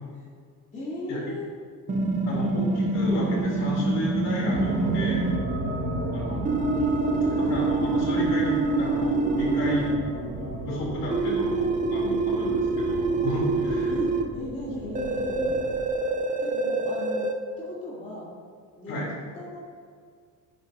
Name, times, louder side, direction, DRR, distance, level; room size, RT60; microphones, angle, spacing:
voice 1, 0.7-1.5 6.7-7.7 13.8-15.6 16.4-18.3 18.8-19.0 19.3-19.6, left 1 dB, 20° left, -8 dB, 3.2 m, -38 dB
sound 1, 1.9-5.4 6.5-10.0 11.1-14.2 15.0-17.3, right 3 dB, 20° right, 0.7 m, -26 dB
voice 2, 2.3-5.2 6.1-6.5 7.3-10.0 10.3-13.9 18.9-19.1, left 1 dB, 45° left, -4 dB, 3.3 m, -32 dB
sound 2, 4.5-15.9, right 1 dB, 45° right, 3.4 m, -33 dB
19.0 x 9.6 x 2.8 m, 2.1 s
cardioid pair, 175°, 35 cm